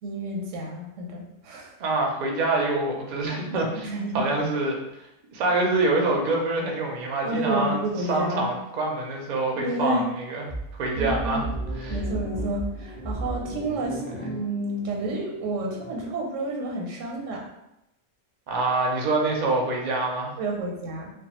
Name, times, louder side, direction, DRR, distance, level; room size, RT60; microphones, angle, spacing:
voice 1, 0.0-1.7 3.8-4.3 7.2-8.5 9.6-10.1 10.9-11.4 11.9-17.4 20.4-21.1, right 1 dB, 90° right, -1 dB, 1.0 m, -30 dB
voice 2, 1.8-4.8 5.3-11.4 11.8-12.0 14.2-14.3 18.5-20.3, right 2 dB, 55° right, 0 dB, 0.5 m, -26 dB
sound 1, 10.5-16.1, right 1 dB, 10° left, 0.7 m, -34 dB
2.3 x 2.3 x 2.9 m, 0.88 s
omnidirectional pair, 1.3 m